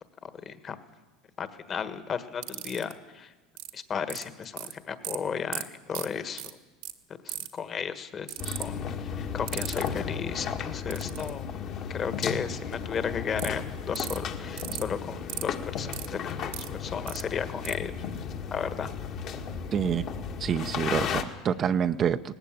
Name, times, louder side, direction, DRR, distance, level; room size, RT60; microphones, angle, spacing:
voice 1, 0.4-0.8 1.4-3.3 3.7-6.4 7.2-8.3 8.6-11.5 11.9-17.9 18.5-18.9, left 7 dB, 30° left, 11 dB, 1.5 m, -34 dB
sound 1, 2.4-2.9 3.6-3.7 4.1-4.7 5.0-5.2 5.5-5.6 5.9-6.1 6.4-6.5 6.8-6.9 7.3-7.6 8.3-8.6 9.5-9.9 10.9-11.3 13.4-13.5 13.9-14.2 14.6-14.8 15.3-15.4 15.9-16.7 17.1-17.2 17.6-17.7, right 16 dB, 75° right, 1.6 m, -35 dB
sound 2, 8.4-21.2, left 7 dB, 50° left, 1.8 m, -34 dB
voice 2, 19.7-20.1 20.4-22.4, right 8 dB, 35° right, 10 dB, 0.6 m, -27 dB
18.5 x 15.0 x 9.2 m, 1.2 s
supercardioid pair, 120°, 0 cm